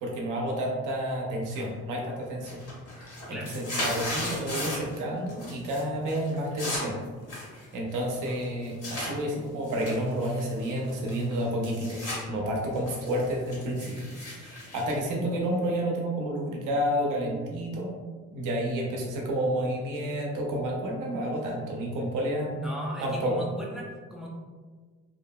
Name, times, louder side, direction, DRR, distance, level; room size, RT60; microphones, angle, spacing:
voice 1, 0.0-2.6 3.0-7.0 7.7-12.0 12.3-17.9 18.3-22.7 23.0-23.4, right 1 dB, 90° right, -1 dB, 0.7 m, -30 dB
sound 1, 1.5-2.0 2.3-5.0 5.3-5.8 6.1-9.1 9.6-12.2 12.6-15.7, left 1 dB, 50° left, 1.5 m, -36 dB
voice 2, 22.6-24.3, equal, ahead, -4 dB, 0.6 m, -38 dB
2.7 x 2.6 x 2.2 m, 1.4 s
cardioid pair, 90°, 30 cm